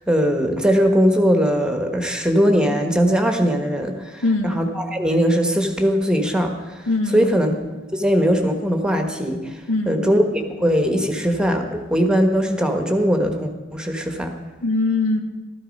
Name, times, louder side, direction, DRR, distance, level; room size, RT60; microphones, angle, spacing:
voice 1, 0.1-4.2 4.5-4.7 4.9-6.7 7.1-7.5 7.9-9.6 9.9-14.3, equal, 5° right, 5 dB, 1.2 m, -20 dB
voice 2, 4.2-4.6 6.9-7.3 9.7-10.1 14.6-15.2, left 2 dB, 80° left, 3 dB, 1.8 m, -21 dB
15.0 x 13.5 x 5.3 m, 1.2 s
head